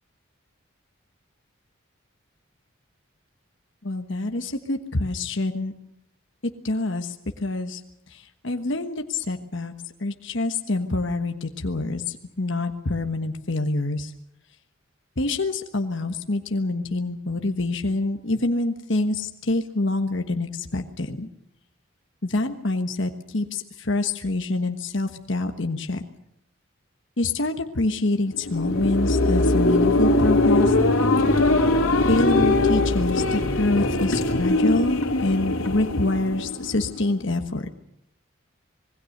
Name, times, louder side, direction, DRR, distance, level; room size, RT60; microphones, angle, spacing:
voice 1, 3.8-5.7 6.6-7.1 7.4-7.8 8.1-9.7 10.0-14.1 15.2-21.3 22.2-26.0 27.2-30.7 32.1-37.7, left 2 dB, 60° left, 5 dB, 1.3 m, -26 dB
sound 1, 28.3-37.0, left 2 dB, 85° left, 2.9 m, -21 dB
26.0 x 21.0 x 6.6 m, 0.76 s
head